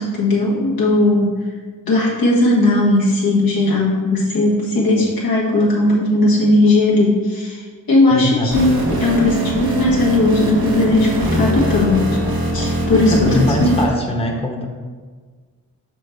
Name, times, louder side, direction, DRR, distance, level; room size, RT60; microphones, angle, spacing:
voice 1, 0.0-1.3 1.8-12.1 12.5-13.8, left 2 dB, 90° left, -5 dB, 1.5 m, -17 dB
voice 2, 8.1-8.5 13.1-14.6, left 1 dB, 15° left, 1 dB, 0.9 m, -21 dB
sound 1, 8.5-13.9, right 1 dB, 90° right, 1.1 m, -22 dB
6.0 x 4.6 x 3.5 m, 1.5 s
cardioid pair, 60°, 35 cm